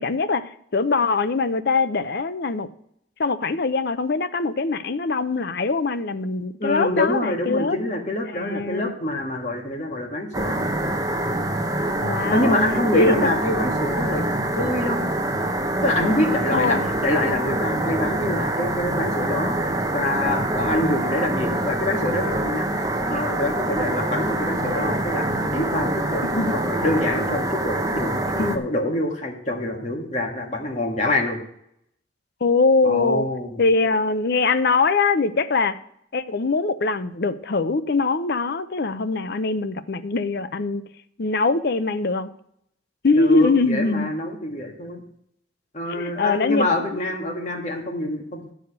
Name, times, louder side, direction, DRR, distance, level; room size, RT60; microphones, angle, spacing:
voice 1, 0.0-2.7 3.2-7.8 8.3-8.9 12.0-12.6 12.9-13.3 16.5-16.9 26.2-26.5 28.4-28.6 32.4-33.3 33.6-35.8 36.1-40.8 41.2-42.3 43.0-44.1 45.9-47.0, left 3 dB, 55° left, 12 dB, 0.6 m, -22 dB
voice 2, 6.6-10.6 12.3-14.2 14.6-15.0 15.8-22.7 23.1-28.3 28.5-31.4 32.8-33.6 43.2-45.0 45.7-48.5, left 1 dB, 40° left, 2 dB, 1.7 m, -26 dB
sound 1, 10.3-28.6, right 1 dB, 20° right, 0.8 m, -25 dB
11.0 x 5.0 x 8.1 m, 0.72 s
head